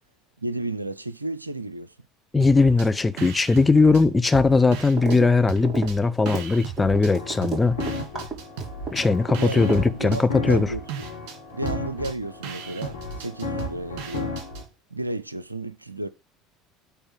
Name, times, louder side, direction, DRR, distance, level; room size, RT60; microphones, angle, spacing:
voice 1, 0.4-1.9 9.4-10.8 11.5-14.4 14.9-16.1, right 2 dB, 90° right, 0.5 m, -32 dB
voice 2, 2.3-7.8 8.9-10.7, left 3 dB, 15° left, 0.7 m, -19 dB
sound 1, 2.4-2.9 3.2-5.2 5.5-7.1 7.4-14.7, right 6 dB, 55° right, 2.6 m, -37 dB
sound 2, 5.0-5.3 5.5-9.4 9.7-10.6, right 5 dB, 20° right, 4.1 m, -31 dB
sound 3, 6.9-14.6, left 4 dB, 85° left, 1.9 m, -35 dB
8.7 x 3.5 x 6.5 m
figure-of-eight pair, 65°, 0 cm